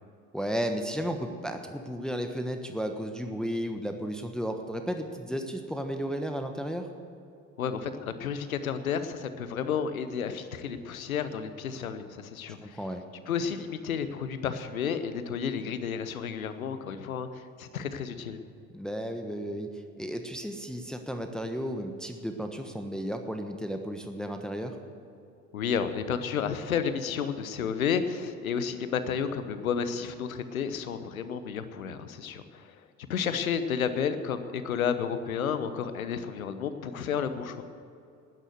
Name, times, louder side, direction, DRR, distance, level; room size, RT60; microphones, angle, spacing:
voice 1, 0.3-6.9 12.6-13.0 18.7-24.8, equal, ahead, 5 dB, 1.2 m, -33 dB
voice 2, 7.6-12.8 13.3-18.4 25.5-32.8 33.1-37.6, left 7 dB, 90° left, 11 dB, 0.9 m, -31 dB
13.5 x 9.8 x 8.0 m, 2.6 s
hypercardioid pair, 65°, 41 cm